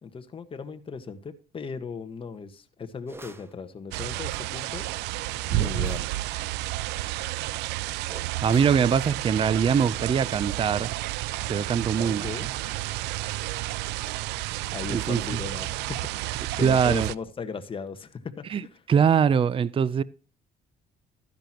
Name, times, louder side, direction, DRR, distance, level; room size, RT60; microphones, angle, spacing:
voice 1, 0.0-5.1 5.5-6.0 12.0-12.5 13.1-13.2 13.6-13.7 14.7-18.8, left 5 dB, 30° left, 1.5 m, -37 dB
sound 1, 3.1-3.5 5.6-6.2 8.1-8.8, right 2 dB, 15° right, 1.1 m, -45 dB
sound 2, 3.9-17.1, right 18 dB, 90° right, 0.4 m, -31 dB
voice 2, 8.4-10.9 11.5-12.3 14.9-15.4 16.6-17.1 18.5-18.6 18.9-20.0, right 7 dB, 30° right, 0.5 m, -22 dB
13.0 x 10.5 x 3.0 m
cardioid pair, 110°, 17 cm